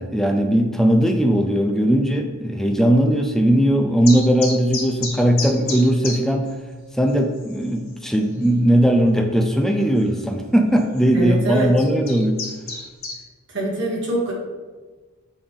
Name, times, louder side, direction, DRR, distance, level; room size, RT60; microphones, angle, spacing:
voice 1, 0.0-6.5 7.0-12.4, equal, ahead, 4 dB, 0.4 m, -18 dB
sound 1, 4.0-6.2 6.5-6.6 7.1-7.2 7.4-7.9 8.4-8.5 9.9-10.0 10.8-11.0 11.6-13.2, left 4 dB, 80° left, 1.6 m, -30 dB
voice 2, 11.1-11.7 13.5-14.3, right 1 dB, 55° right, -5 dB, 2.0 m, -23 dB
8.6 x 3.4 x 3.6 m, 1.3 s
head